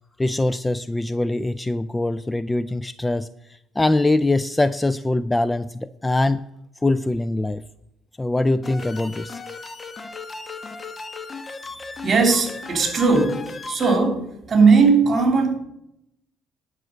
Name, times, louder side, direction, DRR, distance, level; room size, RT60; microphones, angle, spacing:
voice 1, 0.2-3.3 3.8-6.4 6.8-7.6 8.2-9.4, left 2 dB, 10° left, 15 dB, 0.3 m, -22 dB
sound 1, 8.6-14.0, left 3 dB, 25° left, 1.0 m, -36 dB
voice 2, 12.0-13.4 13.7-15.6, right 4 dB, 35° right, 4 dB, 3.3 m, -18 dB
10.5 x 6.1 x 7.9 m, 0.80 s
cardioid pair, 100°, 0 cm